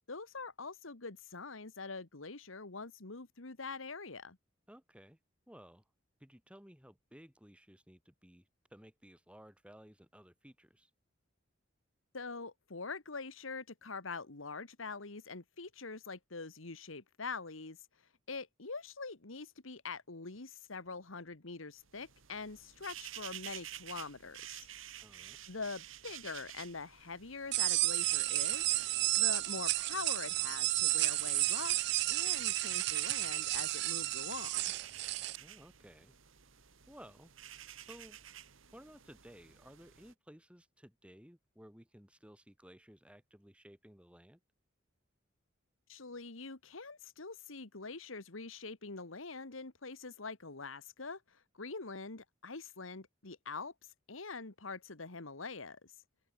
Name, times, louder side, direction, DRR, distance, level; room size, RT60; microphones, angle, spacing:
voice 1, 0.1-4.4 12.1-24.7 25.5-28.8 29.2-34.6 45.9-56.0, left 4 dB, 80° left, 1.8 m, -44 dB
voice 2, 4.7-5.2 5.5-5.8 6.2-10.9 25.0-25.4 35.4-36.1 36.9-37.3 37.8-38.2 38.7-44.4, equal, 5° right, 7.3 m, -57 dB
sound 1, 21.9-40.1, right 11 dB, 80° right, 1.9 m, -51 dB
sound 2, 27.5-35.4, right 18 dB, 55° right, 0.4 m, -32 dB
open air
head